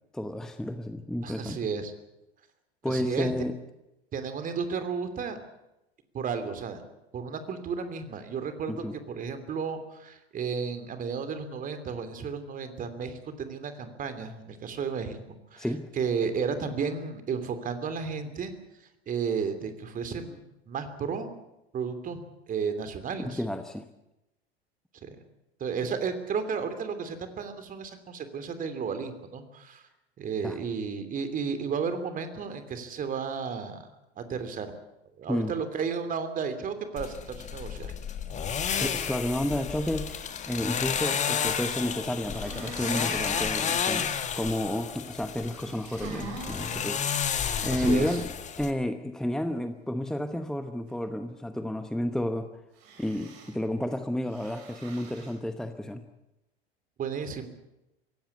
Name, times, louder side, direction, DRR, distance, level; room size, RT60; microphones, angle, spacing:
voice 1, 0.1-1.6 2.8-3.5 8.7-8.9 15.6-15.9 23.2-23.8 30.4-30.6 35.3-35.5 38.8-48.3 48.6-52.5 53.0-56.0, left 1 dB, ahead, 9 dB, 1.0 m, -31 dB
voice 2, 1.2-1.9 2.9-3.3 4.1-5.4 6.1-6.8 7.1-15.2 15.5-15.7 16.0-18.5 19.1-20.4 20.7-21.3 21.7-23.4 25.0-25.2 25.6-29.8 30.2-33.9 34.2-34.7 35.2-37.9 47.7-48.2 57.0-57.5, right 6 dB, 25° right, 9 dB, 3.0 m, -33 dB
sound 1, 37.0-48.7, left 7 dB, 20° left, 1.8 m, -31 dB
sound 2, 42.3-43.7 45.5-46.9 52.8-53.5 54.3-55.3, right 3 dB, 50° right, 6.1 m, -42 dB
24.5 x 16.5 x 8.3 m, 0.93 s
figure-of-eight pair, 90°, 32 cm